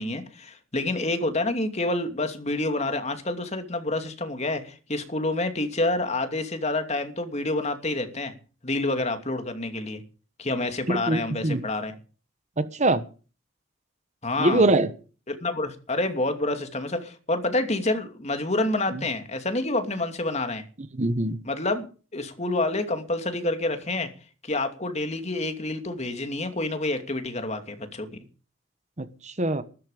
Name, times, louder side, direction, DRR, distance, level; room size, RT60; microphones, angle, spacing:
voice 1, 0.0-8.3 8.6-10.0 10.4-11.9 14.2-14.7 15.3-20.7 21.4-21.9 22.1-24.1 24.4-28.1, left 2 dB, 35° left, 2.7 m, -28 dB
voice 2, 10.9-11.6 12.6-13.0 14.4-14.9 18.9-19.0 20.9-21.4 29.0-29.6, right 2 dB, 35° right, 1.3 m, -23 dB
14.5 x 13.5 x 5.1 m
head